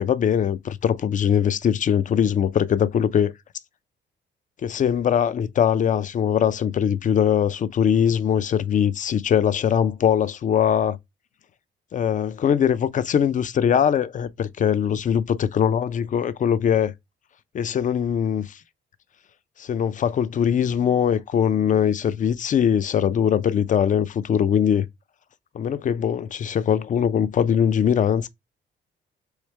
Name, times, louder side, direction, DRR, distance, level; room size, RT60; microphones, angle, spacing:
voice 1, 0.0-3.3 4.6-11.0 11.9-16.9 17.5-18.6 19.6-24.9 25.5-28.3, left 8 dB, 40° left, 0.4 m, -21 dB
3.2 x 3.1 x 3.2 m
cardioid pair, 90°, 20 cm